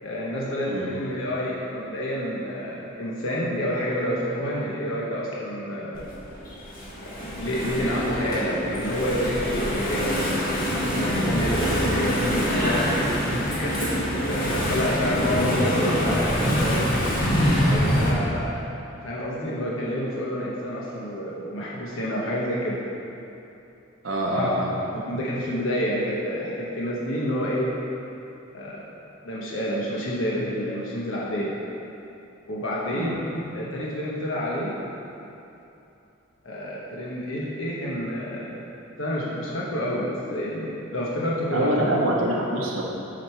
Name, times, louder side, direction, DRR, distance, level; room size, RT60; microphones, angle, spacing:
voice 1, 0.0-6.0 7.2-10.4 10.9-12.9 13.3-13.9 14.3-16.9 17.6-18.6 19.0-22.8 24.3-24.5 24.9-27.7 28.5-28.9 29.2-31.5 32.5-34.7 36.4-38.6 39.0-42.0, equal, 80° left, -5 dB, 1.0 m, -28 dB
Engine / Mechanisms, 6.0-18.1, equal, 45° left, 1.5 m, -25 dB
voice 2, 24.0-24.8 32.9-33.2 41.5-42.8, right 1 dB, 75° right, -2 dB, 0.9 m, -25 dB
7.5 x 5.2 x 4.4 m, 2.8 s
head